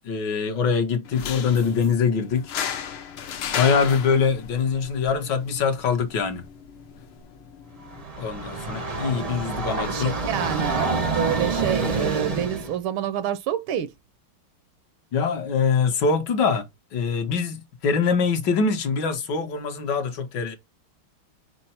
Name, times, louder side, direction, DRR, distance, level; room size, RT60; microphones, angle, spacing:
voice 1, 0.0-2.5 3.6-6.5 8.2-10.1 15.1-16.6 16.9-20.6, left 5 dB, 65° left, 1.5 m, -23 dB
sound 1, 1.1-8.0, left 8 dB, 90° left, 1.7 m, -35 dB
Train, 7.8-12.8, right 3 dB, 50° right, 0.4 m, -27 dB
voice 2, 8.0-13.9, right 10 dB, 80° right, 1.4 m, -29 dB
5.4 x 2.0 x 4.2 m
omnidirectional pair, 2.2 m